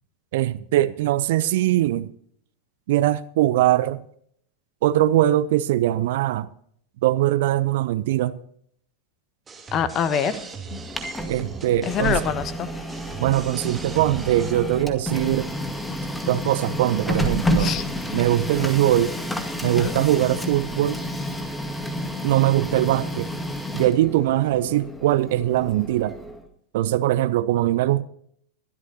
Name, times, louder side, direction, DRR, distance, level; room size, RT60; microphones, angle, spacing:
voice 1, 0.3-2.1 2.9-4.0 4.8-6.5 7.0-8.3 11.3-12.2 13.2-15.5 16.3-17.7 18.1-19.2 19.6-21.0 22.2-23.3 23.7-26.2 26.7-28.0, right 14 dB, 55° right, 0.7 m, -21 dB
sound 1, 9.5-14.5, right 5 dB, 15° right, 3.2 m, -39 dB
voice 2, 9.7-10.4 10.7-10.8 11.8-12.7 17.6-17.8 19.8-19.9, left 7 dB, 30° left, 1.3 m, -25 dB
Printer, 10.7-26.4, equal, 5° left, 1.9 m, -30 dB
22.0 x 12.5 x 2.8 m
figure-of-eight pair, 90°, 0 cm